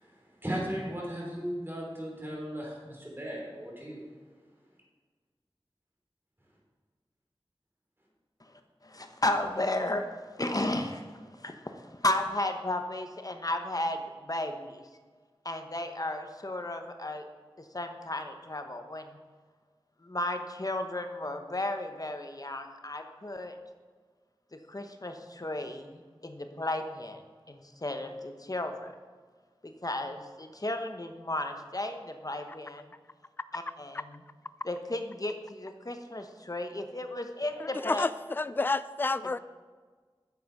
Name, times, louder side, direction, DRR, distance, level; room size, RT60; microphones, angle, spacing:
voice 1, 0.0-4.0, equal, 20° right, -3 dB, 3.6 m, -36 dB
voice 2, 8.8-14.8 15.4-17.2 17.6-19.2 20.0-23.6 24.5-27.2 27.5-28.9 29.6-32.8 33.5-34.2 34.6-38.1, left 1 dB, 40° left, 6 dB, 1.0 m, -34 dB
voice 3, 37.6-39.4, left 3 dB, 20° left, 15 dB, 0.3 m, -30 dB
9.2 x 7.3 x 6.0 m, 1.5 s
wide cardioid pair, 45°, 10 cm